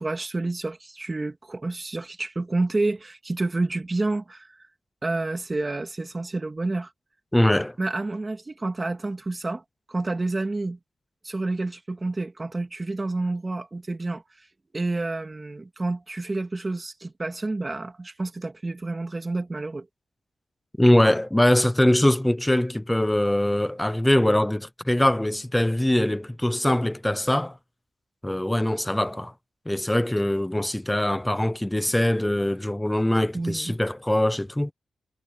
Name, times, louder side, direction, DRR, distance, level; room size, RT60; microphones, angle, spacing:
voice 1, 0.0-4.7 5.0-6.9 7.8-9.6 9.9-10.8 11.2-14.5 14.7-19.9 33.3-33.7, right 2 dB, 20° right, 2.2 m, -29 dB
voice 2, 7.3-7.8 20.8-27.6 28.2-29.3 29.7-34.7, left 1 dB, 5° left, 0.7 m, -22 dB
wide cardioid pair, 150°, 0 cm